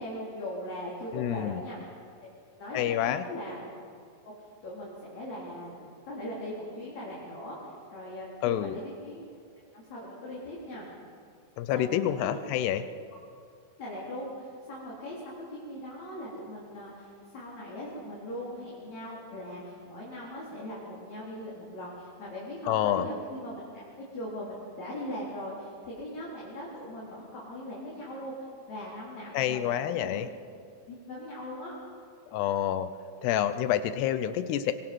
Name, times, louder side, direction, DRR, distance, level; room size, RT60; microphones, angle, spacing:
voice 1, 0.0-1.8 2.6-3.6 4.4-5.7 6.1-9.3 9.7-10.8 11.7-12.6 13.8-23.6 24.0-30.3 30.9-31.7, left 1 dB, 40° left, -6 dB, 5.0 m, -40 dB
voice 2, 1.1-1.6 2.7-3.3 8.4-8.8 11.6-12.8 22.7-23.1 29.3-30.3 32.3-32.9 33.2-34.7, left 11 dB, 80° left, 12 dB, 2.5 m, -28 dB
25.0 x 23.0 x 6.2 m, 2.3 s
omnidirectional pair, 5.5 m